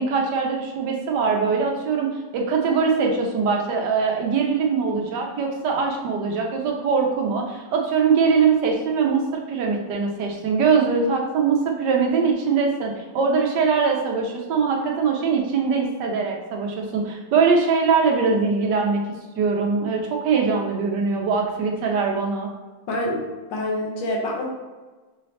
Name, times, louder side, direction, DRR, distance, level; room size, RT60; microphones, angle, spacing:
voice 1, 0.0-2.1 2.3-19.0 19.4-22.5, right 5 dB, 70° right, 1 dB, 1.3 m, -22 dB
voice 2, 22.9-23.2 23.5-24.5, left 1 dB, 80° left, -2 dB, 1.7 m, -26 dB
5.6 x 2.8 x 3.1 m, 1.3 s
omnidirectional pair, 2.0 m